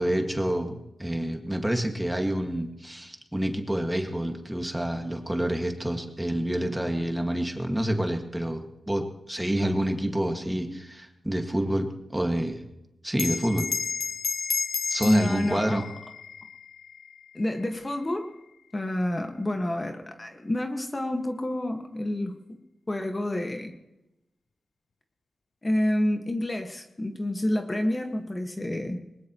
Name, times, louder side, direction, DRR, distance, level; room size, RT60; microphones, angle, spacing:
voice 1, 0.0-12.6 13.0-13.7 14.9-15.8, right 1 dB, 10° right, 4 dB, 1.9 m, -28 dB
Bell, 13.1-18.0, left 5 dB, 75° left, 0.5 m, -32 dB
voice 2, 15.0-15.9 17.3-18.3 18.7-22.6 22.9-23.7 25.6-29.0, left 1 dB, 25° left, 4 dB, 1.6 m, -28 dB
21.0 x 19.5 x 3.1 m, 0.92 s
cardioid pair, 70°, 0 cm